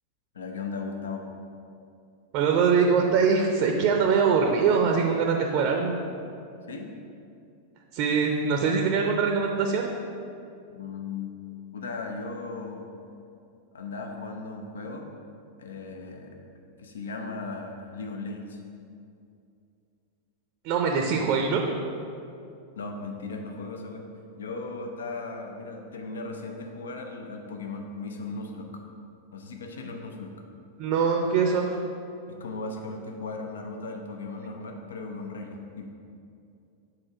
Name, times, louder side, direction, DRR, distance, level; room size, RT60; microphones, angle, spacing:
voice 1, 0.3-1.3 6.7-6.9 10.7-11.4 11.7-12.9 13.7-15.1 15.6-16.5 16.8-18.6 22.7-24.0 24.4-28.8 29.3-30.3 32.4-35.9, left 3 dB, 65° left, 3 dB, 0.6 m, -37 dB
voice 2, 2.3-5.9 7.9-9.9 20.6-21.7 30.8-31.8, right 5 dB, 45° right, 3 dB, 0.6 m, -23 dB
6.3 x 4.3 x 4.8 m, 2.5 s
figure-of-eight pair, 90°, 0 cm